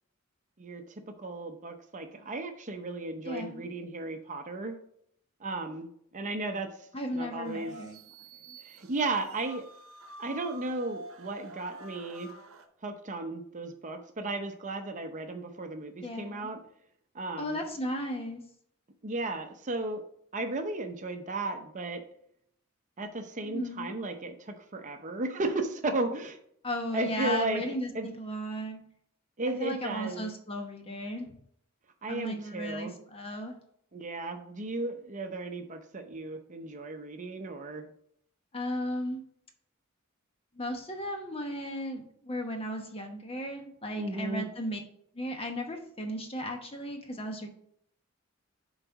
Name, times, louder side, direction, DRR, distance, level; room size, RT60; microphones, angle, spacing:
voice 1, 1.2-4.8 5.4-6.7 7.1-7.7 8.6-9.6 10.2-12.3 12.8-16.6 17.1-17.6 19.0-20.0 20.3-22.0 23.0-26.4 26.9-27.6 27.9-28.1 29.4-30.3 32.0-32.9 33.9-37.8 43.9-44.5, right 2 dB, 35° right, 6 dB, 0.7 m, -35 dB
voice 2, 3.2-3.7 6.9-8.0 16.0-16.5 17.4-18.4 23.4-23.9 26.6-28.8 29.5-31.3 32.1-33.5 38.5-39.2 40.6-44.8 45.1-47.5, equal, 30° left, 4 dB, 1.0 m, -35 dB
sound 1, 7.4-12.6, right 2 dB, 85° right, 0.8 m, -48 dB
7.3 x 4.1 x 4.7 m, 0.68 s
head